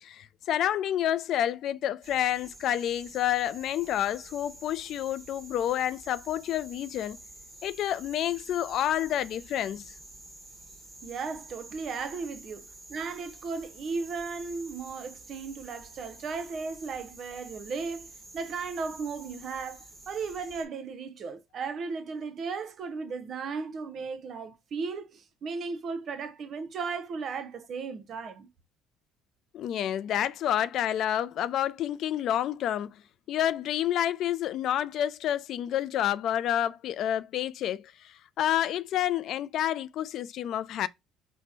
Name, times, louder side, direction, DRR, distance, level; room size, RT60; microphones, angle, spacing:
voice 1, 0.0-7.2 7.6-9.9 29.5-33.0 33.3-40.9, left 11 dB, 65° left, 0.3 m, -29 dB
sound 1, 2.0-20.6, right 2 dB, 35° right, 1.3 m, -49 dB
voice 2, 11.0-28.5, right 4 dB, 55° right, 0.7 m, -36 dB
4.3 x 2.1 x 4.1 m
supercardioid pair, 85°, 0 cm